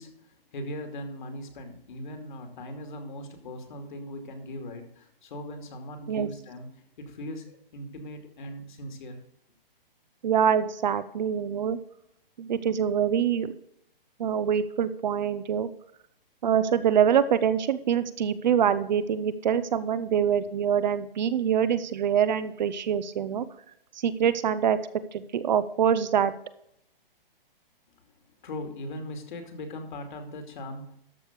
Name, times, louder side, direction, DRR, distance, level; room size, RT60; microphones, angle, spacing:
voice 1, 0.0-9.2 28.4-30.9, left 1 dB, 55° left, 5 dB, 2.6 m, -39 dB
voice 2, 10.2-11.8 12.4-13.5 14.2-15.7 16.4-23.4 24.0-24.8 25.1-26.3, right 8 dB, 50° right, 14 dB, 0.8 m, -25 dB
13.0 x 5.1 x 6.6 m, 0.75 s
hypercardioid pair, 160°, 29 cm